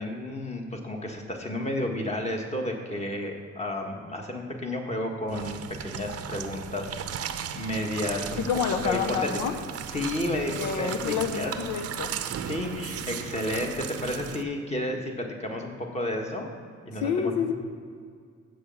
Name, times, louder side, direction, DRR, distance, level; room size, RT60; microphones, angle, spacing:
voice 1, 0.0-8.4 8.8-9.0 9.9-11.5 12.4-16.5 16.8-17.5, left 1 dB, 20° left, 2 dB, 1.6 m, -32 dB
sound 1, 5.3-14.4, right 8 dB, 50° right, 0.6 m, -36 dB
voice 2, 8.4-9.5 10.6-12.1 17.0-17.5, left 7 dB, 85° left, 6 dB, 0.8 m, -28 dB
7.7 x 6.6 x 7.1 m, 2.1 s
cardioid pair, 90°, 30 cm